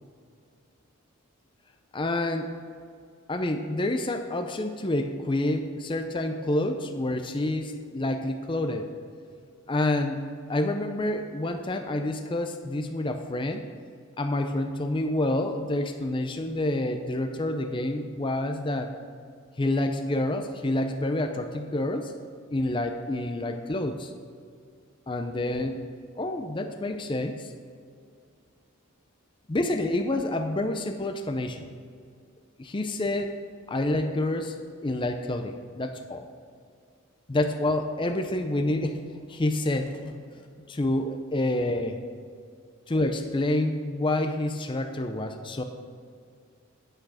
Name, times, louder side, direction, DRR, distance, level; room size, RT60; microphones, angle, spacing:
voice 1, 1.9-2.5 3.3-8.9 9.7-10.2 10.5-13.6 14.2-18.9 19.6-22.1 22.5-24.1 25.1-25.8 26.2-27.5 29.5-31.7 32.6-33.4 33.7-34.6 34.8-36.3 37.3-39.0 39.3-40.2 40.7-42.0 42.9-45.6, left 1 dB, 20° left, 6 dB, 0.5 m, -28 dB
8.9 x 8.4 x 4.9 m, 2.2 s
head